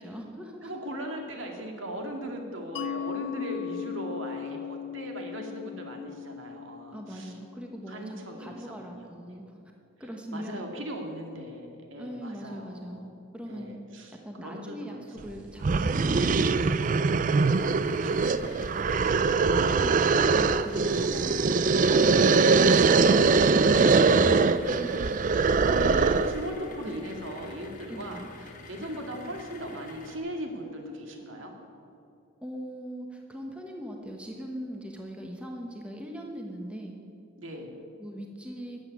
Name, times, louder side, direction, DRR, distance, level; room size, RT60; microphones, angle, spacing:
voice 1, 0.0-0.7 6.9-9.5 10.0-10.6 12.0-13.8 14.2-16.5 18.7-20.0 20.2-23.0 23.4-24.2 24.8-25.7 26.8-26.9 27.9-28.3 32.4-37.0 38.0-38.8, equal, 5° right, 1 dB, 1.1 m, -40 dB
voice 2, 0.6-7.3 7.9-9.4 10.0-13.1 13.5-15.4 17.6-18.8 23.0-31.5 37.4-37.8, equal, 65° right, 2 dB, 2.2 m, -39 dB
Mallet percussion, 2.7-8.1, left 9 dB, 55° left, 0.4 m, -38 dB
sound 1, 15.2-15.3 15.6-26.4, right 4 dB, 40° right, 0.4 m, -22 dB
sound 2, 17.5-30.2, left 3 dB, 40° left, 1.4 m, -48 dB
13.5 x 8.1 x 9.3 m, 2.5 s
head